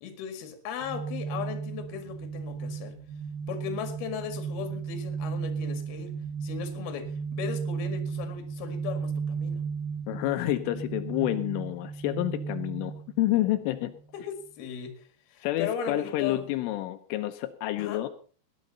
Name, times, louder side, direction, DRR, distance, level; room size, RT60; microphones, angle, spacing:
voice 1, 0.0-3.0 3.5-9.7 14.1-16.5 17.8-18.0, left 7 dB, 60° left, 3.6 m, -37 dB
sound 1, 0.8-13.9, right 5 dB, 80° right, 2.2 m, -35 dB
voice 2, 10.1-13.9 15.4-18.1, left 15 dB, 85° left, 3.4 m, -29 dB
19.0 x 12.0 x 4.1 m
omnidirectional pair, 5.6 m